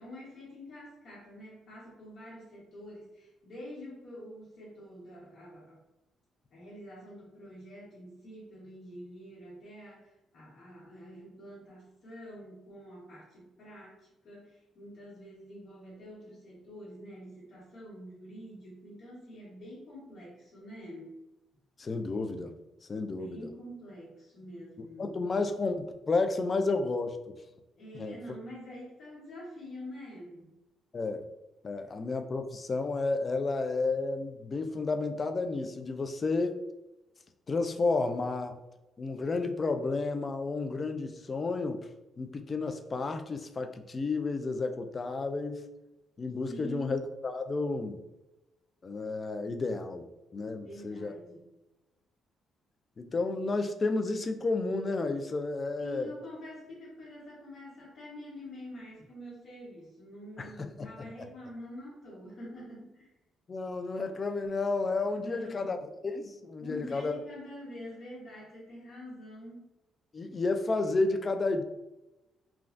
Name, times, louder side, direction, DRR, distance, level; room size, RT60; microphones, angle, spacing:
voice 1, 0.0-5.8 6.5-10.0 10.3-13.9 14.2-21.1 23.0-25.1 27.8-30.5 46.2-47.0 50.6-51.5 55.8-63.1 65.2-65.8 66.6-69.7, equal, 60° left, -7 dB, 1.2 m, -46 dB
voice 2, 21.8-22.5 22.9-23.5 24.8-27.2 27.9-28.4 30.9-31.2 31.6-36.6 37.5-38.6 39.0-41.8 42.2-45.6 46.2-48.0 48.8-51.1 53.0-56.1 60.4-61.1 63.5-67.1 70.1-71.6, left 3 dB, 35° left, 7 dB, 0.3 m, -31 dB
3.2 x 2.3 x 2.5 m, 0.99 s
cardioid pair, 90°, 0 cm